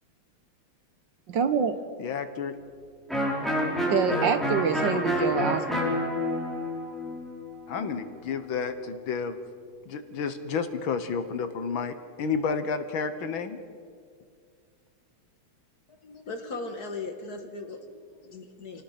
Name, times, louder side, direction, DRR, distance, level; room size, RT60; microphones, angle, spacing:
voice 1, 1.3-1.8 3.9-5.8, right 7 dB, 65° right, 9 dB, 1.7 m, -26 dB
voice 2, 2.0-2.6 4.9-5.0 7.7-9.4 9.9-13.6, left 5 dB, 75° left, 10 dB, 1.9 m, -31 dB
Electric guitar, 3.1-8.7, left 1 dB, ahead, 4.7 m, -29 dB
voice 3, 16.0-18.8, left 3 dB, 50° left, 5 dB, 2.2 m, -38 dB
27.5 x 18.5 x 5.8 m, 2.1 s
omnidirectional pair, 2.2 m